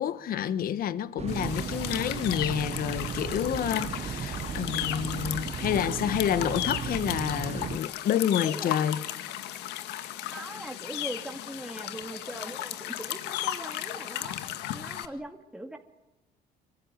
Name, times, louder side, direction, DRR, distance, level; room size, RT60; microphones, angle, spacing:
voice 1, 0.0-9.0, left 10 dB, 60° left, 1.2 m, -29 dB
sound 1, 1.2-7.8, right 7 dB, 40° right, 1.1 m, -35 dB
sound 2, 1.3-15.0, left 13 dB, 90° left, 1.9 m, -35 dB
voice 2, 8.4-8.8 10.2-15.8, right 1 dB, 5° right, 2.4 m, -41 dB
25.0 x 24.5 x 9.4 m
cardioid pair, 110°, 17 cm